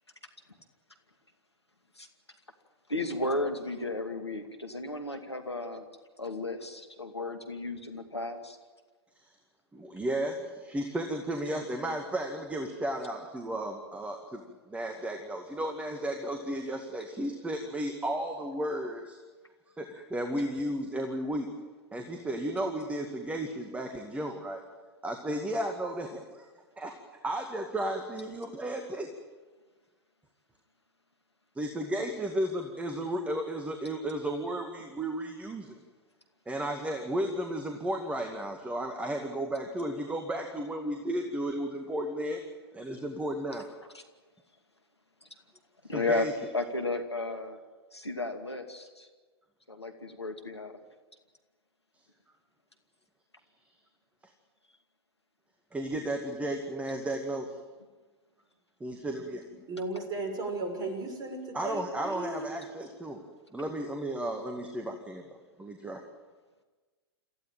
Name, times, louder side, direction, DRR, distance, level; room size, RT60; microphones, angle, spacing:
voice 1, 2.9-5.8 6.2-8.6 43.9-44.0 45.9-46.3 46.5-47.6 47.9-49.1 49.7-50.8, left 2 dB, 85° left, 6 dB, 2.4 m, -34 dB
voice 2, 9.7-14.4 14.7-19.2 19.8-21.5 21.9-24.6 25.0-26.1 26.8-26.9 27.2-29.1 31.6-35.8 36.5-42.4 42.7-43.7 45.9-46.3 54.2-54.3 55.7-57.5 58.8-59.4 61.5-63.2 63.5-66.0, right 1 dB, 10° right, 4 dB, 2.1 m, -34 dB
voice 3, 59.7-62.5, right 2 dB, 30° right, 4 dB, 6.3 m, -35 dB
27.0 x 15.5 x 9.1 m, 1.3 s
figure-of-eight pair, 100°, 14 cm